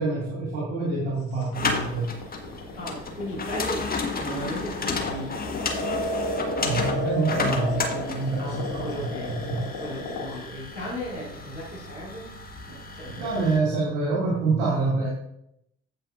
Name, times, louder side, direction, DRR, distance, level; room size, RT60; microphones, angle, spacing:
voice 1, 0.0-2.1 6.6-9.6 13.1-15.1, right 3 dB, 65° right, -5 dB, 3.0 m, -27 dB
sound 1, 1.4-10.4, left 1 dB, 55° left, 2.8 m, -31 dB
sound 2, 1.5-13.6, left 4 dB, 25° left, 1.7 m, -33 dB
voice 2, 2.8-5.7 8.4-9.3 9.8-12.3 12.7-13.4, equal, 90° left, -9 dB, 3.6 m, -36 dB
15.0 x 5.5 x 2.7 m, 0.78 s
figure-of-eight pair, 50°, 34 cm